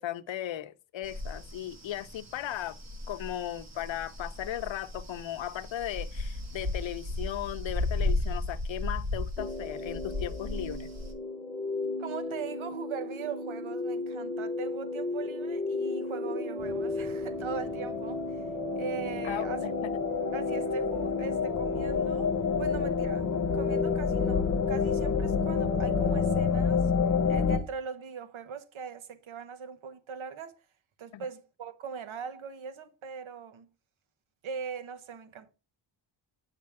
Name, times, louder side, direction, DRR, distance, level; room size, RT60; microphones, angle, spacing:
voice 1, 0.0-2.8 3.1-10.9 19.2-19.9 31.1-31.2, left 12 dB, 70° left, 0.7 m, -37 dB
sound 1, 1.0-11.1, left 2 dB, 35° right, 1.5 m, -35 dB
sound 2, 9.4-26.4, left 2 dB, 10° left, 1.2 m, -35 dB
voice 2, 12.0-18.5 18.8-19.7 20.3-23.3 23.5-30.6 31.0-33.7 34.4-35.5, right 6 dB, 80° right, 1.3 m, -40 dB
sound 3, 16.6-27.6, left 6 dB, 40° left, 1.0 m, -29 dB
8.7 x 5.1 x 3.5 m
wide cardioid pair, 160°, 47 cm